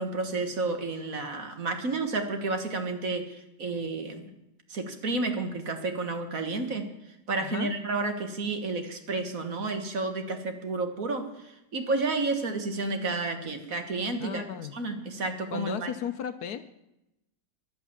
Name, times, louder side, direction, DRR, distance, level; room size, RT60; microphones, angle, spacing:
voice 1, 0.0-4.3 4.7-6.9 7.3-14.4 14.7-15.9, right 3 dB, 50° right, 6 dB, 1.8 m, -31 dB
voice 2, 7.4-7.7 14.2-14.8 15.5-16.6, left 8 dB, 65° left, 10 dB, 1.1 m, -35 dB
14.0 x 11.0 x 7.3 m, 0.89 s
omnidirectional pair, 1.9 m